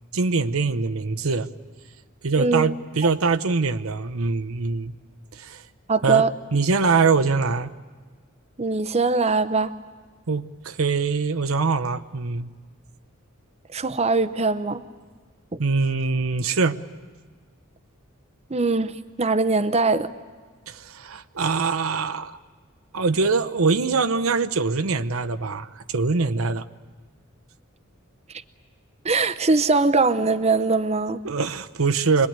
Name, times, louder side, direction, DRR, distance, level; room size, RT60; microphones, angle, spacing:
voice 1, 0.1-1.5 2.2-4.9 5.3-5.6 6.0-6.2 6.5-7.7 10.3-12.5 15.6-16.8 20.7-22.4 22.9-26.7 31.2-32.3, right 4 dB, 85° right, 0.8 m, -23 dB
voice 2, 2.4-2.7 5.9-6.3 8.6-9.7 13.7-14.8 18.5-20.1 29.0-31.2, right 3 dB, 30° right, 0.7 m, -21 dB
26.0 x 21.5 x 8.8 m
head